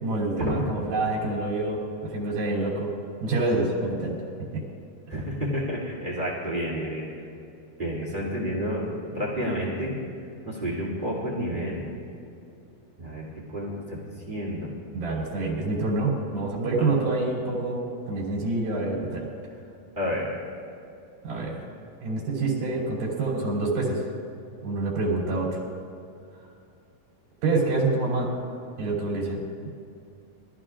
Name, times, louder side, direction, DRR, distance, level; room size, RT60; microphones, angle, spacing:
voice 1, 0.0-2.9 3.2-4.2 4.5-4.6 14.9-19.3 21.2-21.6 22.0-24.0 24.6-25.6 27.4-28.3 28.8-29.4, right 2 dB, 65° right, -4 dB, 4.8 m, -27 dB
voice 2, 5.1-7.1 7.8-9.9 10.4-11.8 13.0-14.0 14.2-14.7 16.8-16.9 20.0-20.3, equal, 15° right, -4 dB, 2.2 m, -30 dB
23.5 x 14.0 x 2.5 m, 2.6 s
omnidirectional pair, 4.5 m